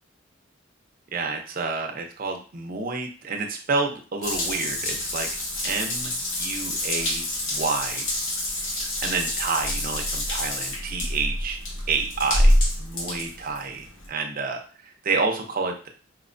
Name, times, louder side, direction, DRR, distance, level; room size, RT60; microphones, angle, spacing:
voice 1, 1.1-5.3 5.6-7.2 7.5-8.1 9.0-11.6 11.9-15.9, right 4 dB, 45° right, 3 dB, 0.5 m, -29 dB
Water tap faucet / Bathtub (filling or washing) / Drip, 4.2-14.1, left 1 dB, 75° left, 0.7 m, -26 dB
4.4 x 2.1 x 2.5 m, 0.38 s
head